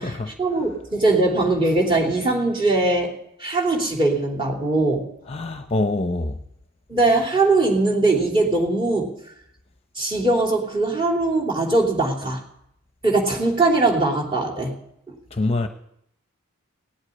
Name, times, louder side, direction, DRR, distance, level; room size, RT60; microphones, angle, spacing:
voice 1, 0.0-3.1 3.4-5.1 6.9-9.2 9.9-12.4 13.0-14.7 15.1-15.2, right 2 dB, 25° right, 3.2 m, -21 dB
voice 2, 5.3-6.4 15.3-15.7, left 2 dB, 30° left, 0.8 m, -25 dB
17.5 x 8.2 x 9.8 m
head